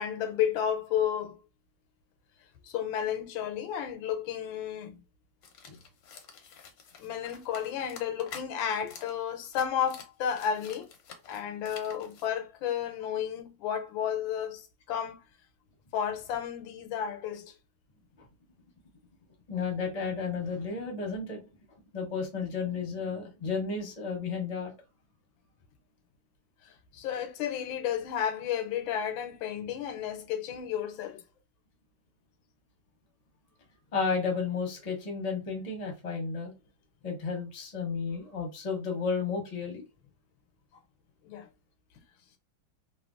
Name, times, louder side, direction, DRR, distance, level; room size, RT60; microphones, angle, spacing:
voice 1, 0.0-1.4 2.6-5.0 7.0-10.9 11.3-15.2 15.9-17.5 26.6-31.2 41.2-41.5, left 9 dB, 85° left, 1.3 m, -32 dB
sound 1, 5.4-8.5 8.9-9.1 9.4-12.3, left 6 dB, 65° left, 0.9 m, -48 dB
voice 2, 19.5-21.4 21.9-24.7 33.9-36.5 37.0-39.8, left 5 dB, 35° left, 0.6 m, -32 dB
3.2 x 2.2 x 2.4 m
omnidirectional pair, 2.1 m